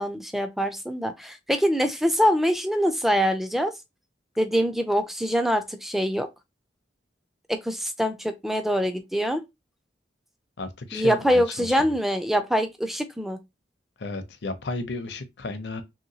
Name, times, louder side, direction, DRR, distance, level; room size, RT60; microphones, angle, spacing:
voice 1, 0.0-3.7 4.4-6.3 7.5-9.4 10.9-13.4, equal, ahead, 0.3 m, -24 dB
voice 2, 10.6-11.9 14.0-15.8, left 3 dB, 65° left, 0.6 m, -33 dB
3.0 x 2.9 x 2.7 m
head